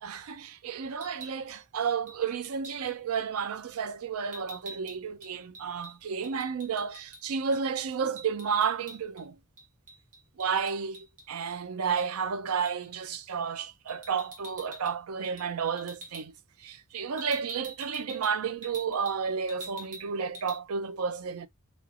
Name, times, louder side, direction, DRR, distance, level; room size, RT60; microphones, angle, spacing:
voice 1, 0.0-9.4 10.4-16.3 16.6-21.5, right 6 dB, 90° right, 0.5 m, -32 dB
sound 1, 0.9-1.4 2.1-2.2 2.6-2.9 4.3-7.2 7.5-7.6 7.9-9.2 9.6-11.5 12.0-12.1 12.6-12.9 13.9-15.0 15.2-15.5 15.8-16.2 17.2-19.2 19.5-20.1 20.3-20.6, right 2 dB, 40° right, 1.0 m, -46 dB
3.1 x 2.9 x 2.4 m
head